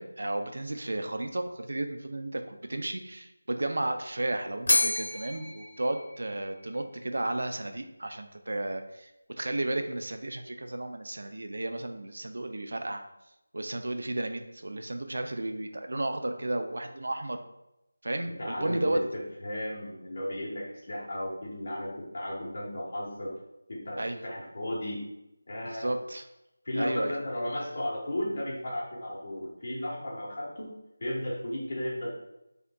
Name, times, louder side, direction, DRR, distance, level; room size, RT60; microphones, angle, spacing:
voice 1, 0.0-9.1 9.4-13.0 13.5-17.4 18.0-19.0 24.0-24.2 25.7-26.2 26.8-27.1, right 1 dB, 65° right, 7 dB, 0.4 m, -33 dB
Bell, 4.7-6.9, left 2 dB, 70° left, 0.8 m, -30 dB
voice 2, 18.4-23.3 23.7-25.0 25.5-25.9 26.6-32.2, left 1 dB, 35° left, -4 dB, 1.0 m, -35 dB
3.6 x 3.5 x 2.2 m, 0.89 s
figure-of-eight pair, 175°, 0 cm